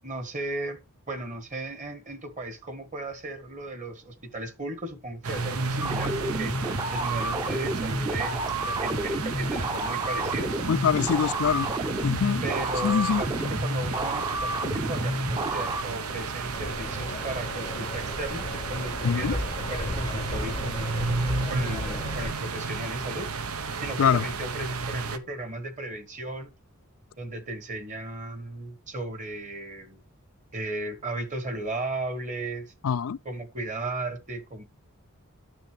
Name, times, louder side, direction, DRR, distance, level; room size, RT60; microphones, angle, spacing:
voice 1, 0.0-0.8 1.1-6.5 6.9-10.6 12.4-20.9 21.5-23.3 23.8-26.5 27.2-30.0 30.5-32.7 33.2-34.6, right 2 dB, 35° right, 1.6 m, -35 dB
sound 1, 5.2-25.2, right 4 dB, 85° right, 1.0 m, -33 dB
sound 2, 5.8-15.8, right 1 dB, 20° right, 0.7 m, -30 dB
voice 2, 10.7-11.7 12.0-12.4 12.8-13.2 19.0-19.3 24.0-24.2 32.8-33.2, left 7 dB, 70° left, 0.4 m, -24 dB
sound 3, 16.5-22.3, left 2 dB, 20° left, 0.6 m, -35 dB
10.0 x 6.6 x 3.4 m
head